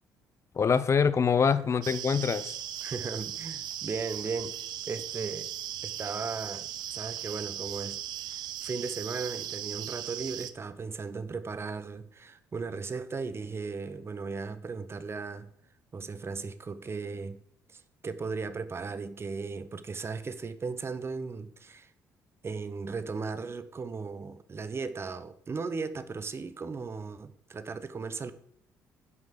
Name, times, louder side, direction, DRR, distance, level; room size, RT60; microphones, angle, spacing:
voice 1, 0.5-2.6, left 6 dB, 40° left, 0.7 m, -24 dB
sound 1, 1.8-10.5, right 11 dB, 70° right, 0.6 m, -38 dB
voice 2, 2.8-5.5 5.8-6.7 6.9-8.0 8.6-15.5 15.9-17.4 17.7-21.9 22.4-28.3, right 4 dB, 35° right, 0.9 m, -36 dB
9.7 x 5.3 x 6.5 m
hypercardioid pair, 60°, 8 cm